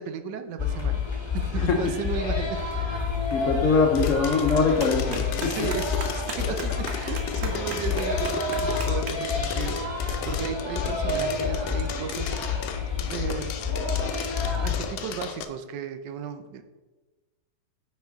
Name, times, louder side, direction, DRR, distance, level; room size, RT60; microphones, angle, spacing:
voice 1, 0.0-2.6 5.4-12.6 13.1-13.6 14.6-16.6, right 7 dB, 75° right, 9 dB, 1.2 m, -35 dB
sound 1, 0.6-14.9, left 5 dB, 15° left, 1.1 m, -29 dB
voice 2, 1.6-1.9 3.3-5.6, left 4 dB, 60° left, 2 dB, 0.9 m, -23 dB
Clapping, 3.0-9.6, right 3 dB, 45° right, 1.0 m, -40 dB
sound 2, 3.9-15.4, left 7 dB, 80° left, 1.3 m, -36 dB
9.2 x 4.5 x 3.5 m, 1.2 s
omnidirectional pair, 2.0 m